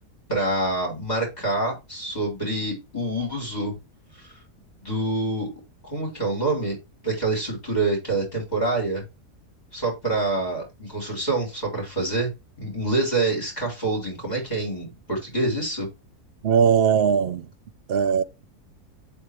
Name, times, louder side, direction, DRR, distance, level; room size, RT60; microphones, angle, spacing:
voice 1, 0.3-3.8 4.2-4.3 4.8-5.5 5.8-6.8 7.0-9.0 9.7-12.3 12.6-15.9, right 2 dB, 25° left, 3.9 m, -26 dB
voice 2, 16.4-17.5 17.9-18.2, right 7 dB, 60° right, 0.6 m, -19 dB
7.9 x 3.7 x 4.8 m
omnidirectional pair, 1.7 m